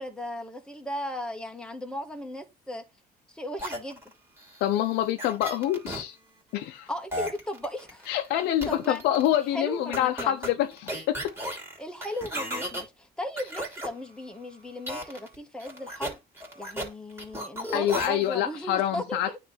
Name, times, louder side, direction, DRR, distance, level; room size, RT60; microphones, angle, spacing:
voice 1, 0.0-2.8 3.3-4.0 6.9-9.0 9.5-10.4 11.8-16.2 16.5-19.4, left 1 dB, 5° left, 1.6 m, -36 dB
sound 1, 3.6-6.0 7.1-8.3 8.6-9.3 9.9-12.8 13.4-13.9 14.9-15.3 15.6-16.9 17.2-18.3, equal, 15° right, 2.8 m, -35 dB
voice 2, 4.6-6.2 6.5-6.9 8.1-11.3 17.7-19.4, left 12 dB, 85° left, 0.7 m, -26 dB
9.4 x 3.3 x 3.9 m
cardioid pair, 110°, 17 cm